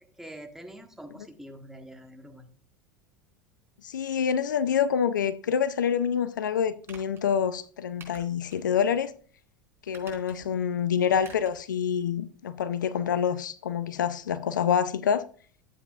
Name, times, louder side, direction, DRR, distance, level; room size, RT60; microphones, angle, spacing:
voice 1, 0.2-2.5, right 1 dB, 5° right, 1.5 m, -45 dB
voice 2, 3.8-9.1 9.9-15.2, left 8 dB, 85° left, 0.5 m, -27 dB
sound 1, 6.8-7.2 8.0-8.6 9.0-9.1 9.8-10.6 11.2-11.6 11.9-12.0, right 5 dB, 25° right, 3.8 m, -49 dB
11.0 x 8.5 x 2.4 m
hypercardioid pair, 85°, 10 cm